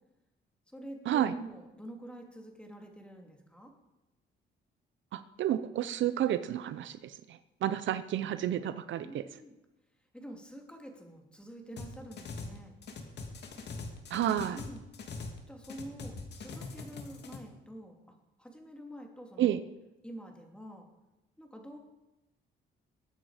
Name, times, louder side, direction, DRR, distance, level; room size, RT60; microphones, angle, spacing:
voice 1, 0.7-3.7 9.0-9.5 10.1-12.7 14.5-14.8 15.5-19.6 20.0-20.9 21.4-21.8, right 1 dB, 5° left, 2 dB, 2.9 m, -47 dB
voice 2, 5.1-9.2 14.1-14.6 19.4-19.6, right 11 dB, 70° right, 13 dB, 0.7 m, -31 dB
sound 1, 11.8-12.6 12.8-15.4 15.6-17.4, left 4 dB, 60° left, 2.3 m, -42 dB
21.5 x 8.8 x 5.1 m, 0.98 s
cardioid pair, 90°, 20 cm